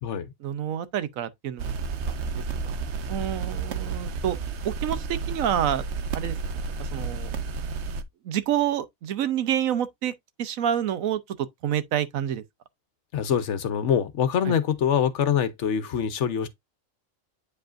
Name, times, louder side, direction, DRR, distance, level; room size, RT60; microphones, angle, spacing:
voice 1, 0.4-1.7 2.1-2.8 3.1-4.4 4.6-5.9 6.1-7.3 8.2-10.1 10.4-12.4 14.4-14.6, right 10 dB, 85° right, 1.1 m, -28 dB
sound 1, 1.6-8.0, right 5 dB, 60° right, 0.9 m, -31 dB
voice 2, 13.1-16.5, left 8 dB, 65° left, 1.0 m, -24 dB
8.5 x 5.1 x 2.5 m
omnidirectional pair, 1.4 m